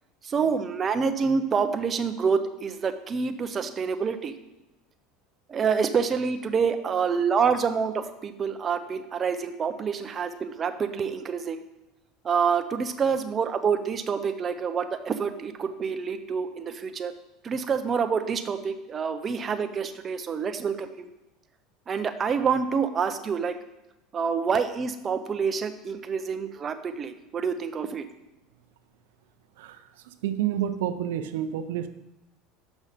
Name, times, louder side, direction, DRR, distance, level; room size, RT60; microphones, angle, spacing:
voice 1, 0.2-4.3 5.5-11.6 12.2-17.1 17.4-21.1 21.9-23.5 24.1-28.0, right 6 dB, 30° right, 8 dB, 0.6 m, -27 dB
voice 2, 30.2-31.9, right 10 dB, 85° right, 9 dB, 0.5 m, -28 dB
6.2 x 5.5 x 5.0 m, 0.97 s
supercardioid pair, 120°, 0 cm